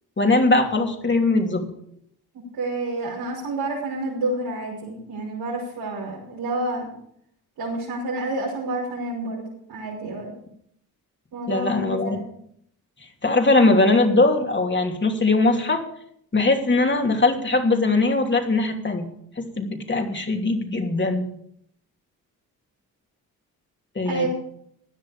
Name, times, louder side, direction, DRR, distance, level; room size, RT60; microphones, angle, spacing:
voice 1, 0.2-1.7 11.5-12.2 13.2-15.8 16.3-19.1 19.4-21.2 23.9-24.3, left 2 dB, 30° left, 3 dB, 3.0 m, -20 dB
voice 2, 2.5-6.9 7.6-10.3 11.3-12.2 24.0-24.3, right 2 dB, 80° right, -6 dB, 5.8 m, -29 dB
16.0 x 10.5 x 5.1 m, 0.69 s
cardioid pair, 65°, 38 cm